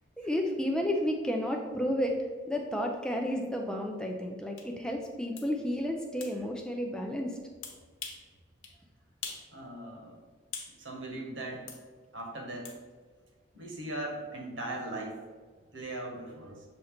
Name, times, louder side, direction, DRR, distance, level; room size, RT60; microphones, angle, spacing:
voice 1, 0.2-7.4, equal, 5° left, 1 dB, 0.4 m, -32 dB
sound 1, 4.6-4.7 5.4-5.5 6.2-6.4 7.6-8.3 8.6-8.8 9.2-9.5 9.8-10.8 11.7-11.8 12.6-12.8, left 6 dB, 80° left, 1.0 m, -42 dB
voice 2, 9.5-10.2 10.8-11.8 12.1-12.8 13.5-15.2 15.7-16.6, right 1 dB, 75° right, 0 dB, 1.3 m, -39 dB
6.9 x 2.8 x 5.0 m, 1.5 s
head